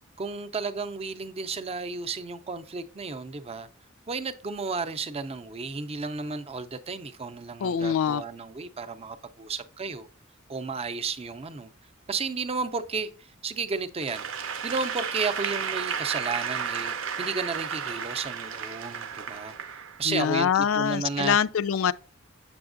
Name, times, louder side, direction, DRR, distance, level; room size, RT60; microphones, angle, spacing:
voice 1, 0.2-3.7 4.1-10.1 10.5-11.7 12.1-14.3 14.6-19.6 20.0-21.4, right 4 dB, 30° right, 0.5 m, -33 dB
voice 2, 7.6-8.2 20.1-21.9, left 8 dB, 75° left, 0.4 m, -24 dB
Applause / Crowd, 14.0-20.3, right 7 dB, 70° right, 0.6 m, -33 dB
7.0 x 6.8 x 2.5 m
head